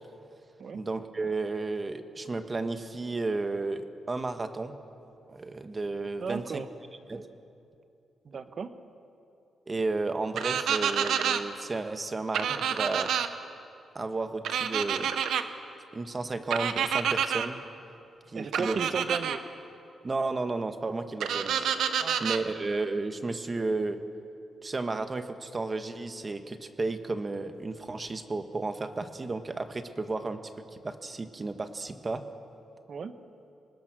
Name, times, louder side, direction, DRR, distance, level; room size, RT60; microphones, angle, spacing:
voice 1, 0.7-4.7 5.3-6.6 7.1-7.3 9.7-13.1 13.9-15.1 15.9-17.6 18.3-18.8 20.0-21.7 22.2-24.0 24.6-30.4 30.7-32.2, right 3 dB, 30° right, 8 dB, 1.4 m, -33 dB
voice 2, 6.2-6.7 8.2-8.7 18.3-19.4 22.0-22.2 32.9-33.1, right 5 dB, 55° right, 10 dB, 1.2 m, -34 dB
sound 1, 10.4-11.4 12.3-13.3 14.4-15.4 16.5-17.5 18.5-19.4 21.2-22.4, right 8 dB, 85° right, 1.0 m, -28 dB
26.0 x 20.0 x 6.2 m, 2.7 s
cardioid pair, 95°, 0 cm